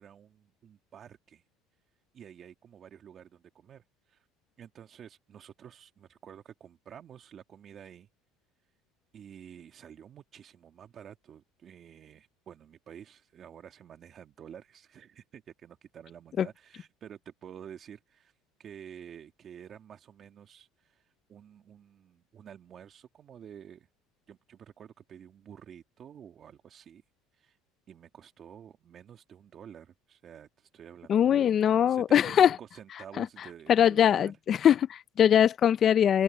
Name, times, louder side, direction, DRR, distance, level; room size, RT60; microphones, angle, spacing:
voice 1, 0.0-1.4 2.1-4.2 4.6-8.1 9.1-18.3 18.6-20.7 21.3-23.9 24.3-27.0 27.4-27.6 27.9-34.4, right 9 dB, 40° right, 2.6 m, -50 dB
voice 2, 31.1-32.6 33.2-33.3 33.7-36.2, left 9 dB, 40° left, 0.5 m, -22 dB
open air
supercardioid pair, 120°, 0 cm